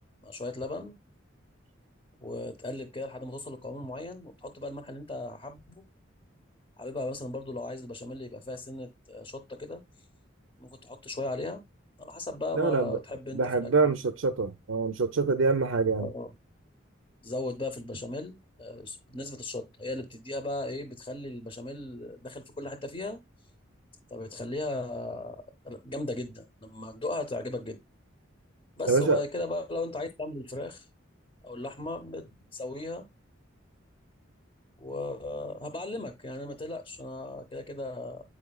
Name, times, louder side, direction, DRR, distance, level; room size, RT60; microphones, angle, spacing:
voice 1, 0.2-0.9 2.2-5.8 6.8-9.8 10.6-11.6 12.0-14.0 16.0-16.3 17.2-23.2 24.1-27.8 28.8-30.9 31.4-33.1 34.8-38.2, left 2 dB, 25° left, 0.8 m, -37 dB
voice 2, 12.5-13.0 13.3-16.1 28.9-29.2, right 4 dB, 80° right, 0.6 m, -25 dB
8.6 x 4.9 x 2.3 m
head